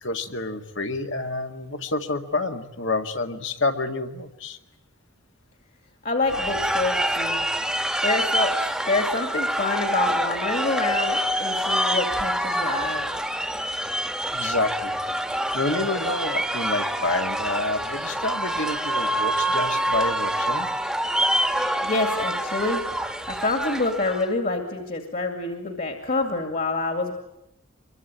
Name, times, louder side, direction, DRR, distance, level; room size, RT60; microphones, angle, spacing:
voice 1, 0.0-4.6 14.3-15.0 15.5-20.7, left 2 dB, 60° left, 5 dB, 1.9 m, -28 dB
voice 2, 6.0-7.5 8.0-8.5 8.9-13.1 21.8-22.8 23.3-27.1, left 3 dB, 40° left, 4 dB, 2.4 m, -27 dB
sound 1, 6.3-24.3, right 1 dB, 5° right, 1.5 m, -26 dB
25.5 x 23.0 x 9.0 m, 0.85 s
head